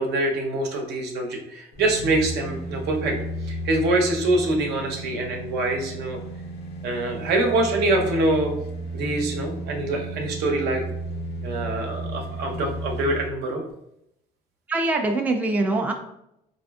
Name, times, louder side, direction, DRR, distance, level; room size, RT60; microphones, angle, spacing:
voice 1, 0.0-3.2 3.5-6.2 6.8-8.5 8.9-10.8 11.4-13.6, right 2 dB, 75° right, 2 dB, 0.7 m, -24 dB
sound 1, 1.7-13.3 13.7-13.8, right 1 dB, 85° left, 0.6 m, -33 dB
voice 2, 14.7-15.9, right 2 dB, 10° right, 3 dB, 0.4 m, -23 dB
4.0 x 2.6 x 2.3 m, 0.81 s
cardioid pair, 110°, 17 cm